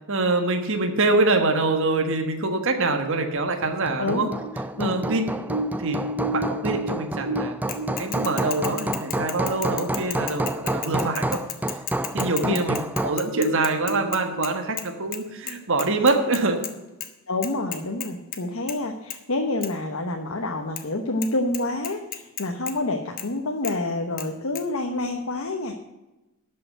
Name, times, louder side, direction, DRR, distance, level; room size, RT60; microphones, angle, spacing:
voice 1, 0.1-4.3 4.8-5.2 5.8-6.0 6.3-7.6 8.0-11.4 12.1-16.6, right 3 dB, 60° right, 5 dB, 1.4 m, -24 dB
Hammer, 3.6-13.3, right 1 dB, 10° right, 0.3 m, -29 dB
sound 1, 4.2-9.8 10.1-10.2 10.6-11.2 11.6-11.7 12.3-12.4 12.7-12.9 13.2-14.4, right 1 dB, 25° right, 4.1 m, -32 dB
Bicycle / Mechanisms, 7.7-14.9 15.1-15.2 15.5-16.7 17.0-17.1 17.4-18.4 18.7-18.8 19.1-19.2 19.6-19.7 20.8-20.9 21.2-21.3 21.5-22.7 23.2-23.3 23.6-23.8 24.2-24.3 24.6-24.7, left 10 dB, 40° left, 1.1 m, -34 dB
voice 2, 17.3-25.7, left 2 dB, 65° left, 3 dB, 1.0 m, -28 dB
12.5 x 5.8 x 7.8 m, 1.0 s
head